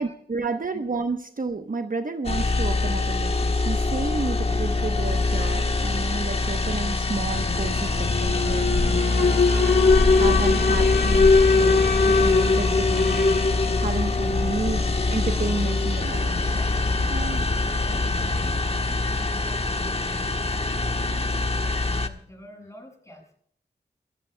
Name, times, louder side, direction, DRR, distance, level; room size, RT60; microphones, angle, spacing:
voice 1, 0.0-9.3 10.1-16.3 17.1-17.4, right 3 dB, 50° right, 7 dB, 1.0 m, -31 dB
sound 1, 2.2-22.1, left 3 dB, 35° left, 1.3 m, -25 dB
Alarm, 7.3-19.4, left 4 dB, 60° left, 1.1 m, -23 dB
voice 2, 8.3-8.8 16.1-16.8 17.1-21.3 21.7-23.3, equal, 15° left, 1 dB, 7.0 m, -47 dB
28.5 x 15.0 x 2.3 m, 0.63 s
wide cardioid pair, 55°, 18 cm